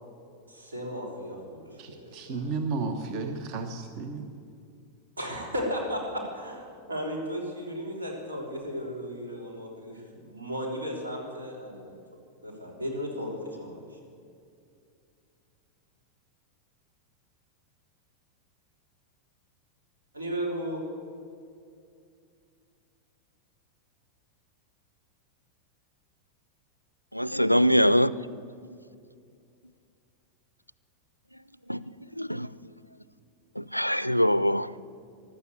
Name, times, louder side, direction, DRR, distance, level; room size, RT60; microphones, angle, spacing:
voice 1, 0.5-2.4 5.2-12.0 12.4-14.0 20.1-20.8, equal, 75° right, 0 dB, 3.5 m, -35 dB
voice 2, 1.8-4.3, right 4 dB, 40° right, 7 dB, 1.1 m, -33 dB
voice 3, 27.1-28.1 31.7-31.8 32.2-32.5 33.6-34.8, equal, 90° left, 18 dB, 0.4 m, -23 dB
15.0 x 12.0 x 8.1 m, 2.4 s
figure-of-eight pair, 90°, 0 cm